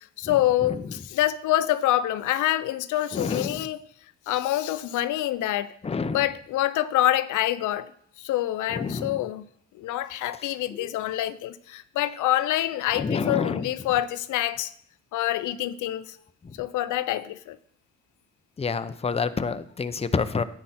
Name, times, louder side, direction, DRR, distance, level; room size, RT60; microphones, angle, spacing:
voice 1, 0.2-3.8 4.3-5.7 6.1-7.9 8.2-9.4 9.8-14.7 15.1-16.1 16.6-17.6, left 13 dB, 80° left, 0.6 m, -26 dB
voice 2, 3.1-3.6 5.8-6.2 8.7-9.2 10.7-10.9 12.9-13.7 16.4-16.5 18.6-20.4, left 5 dB, 20° left, 0.6 m, -28 dB
10.5 x 8.9 x 4.2 m
cardioid pair, 90°, 30 cm